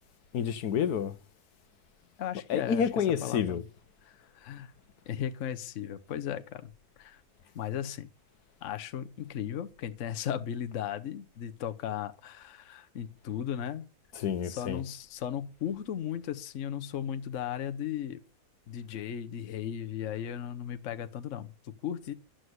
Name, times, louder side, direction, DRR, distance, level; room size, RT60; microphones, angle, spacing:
voice 1, 0.3-1.1 2.5-3.6 14.1-14.8, left 7 dB, 75° left, 1.4 m, -29 dB
voice 2, 2.2-2.8 3.2-3.6 4.0-4.7 5.1-6.7 7.0-7.2 7.5-8.1 8.6-13.9 14.4-18.2 18.7-22.1, left 9 dB, 55° left, 1.1 m, -36 dB
11.5 x 7.7 x 7.9 m
omnidirectional pair, 1.7 m